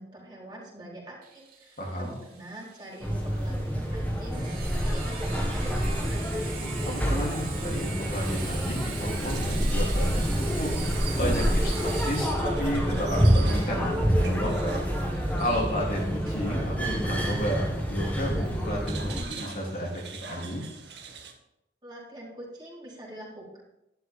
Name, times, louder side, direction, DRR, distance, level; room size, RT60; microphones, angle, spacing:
voice 1, 0.0-6.4 21.8-23.6, right 1 dB, 25° right, -5 dB, 4.4 m, -44 dB
Sawing, 1.2-16.6, right 5 dB, 50° right, 3.4 m, -42 dB
voice 2, 1.8-2.1 6.8-10.7 11.1-14.8 15.1-19.9 20.3-20.6, equal, 50° left, -3 dB, 3.4 m, -32 dB
sound 1, 3.0-19.2, equal, 10° left, 1.9 m, -27 dB
sound 2, 8.9-21.3, right 4 dB, 75° right, 2.0 m, -44 dB
12.5 x 11.5 x 3.7 m, 0.87 s
head